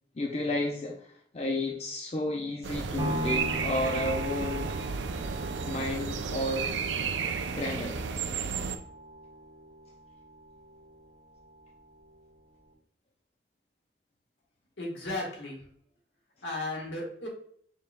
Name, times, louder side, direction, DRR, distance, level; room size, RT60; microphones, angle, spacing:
voice 1, 0.1-4.8 5.6-6.7 7.5-8.1, left 1 dB, 35° left, 0.4 m, -32 dB
sound 1, 2.6-8.8, right 5 dB, 80° right, 0.4 m, -33 dB
sound 2, 3.0-11.1 11.6-11.7, equal, 25° right, 0.9 m, -39 dB
voice 2, 14.8-15.7 16.4-17.3, left 2 dB, 80° left, 1.6 m, -35 dB
5.3 x 3.8 x 2.2 m
head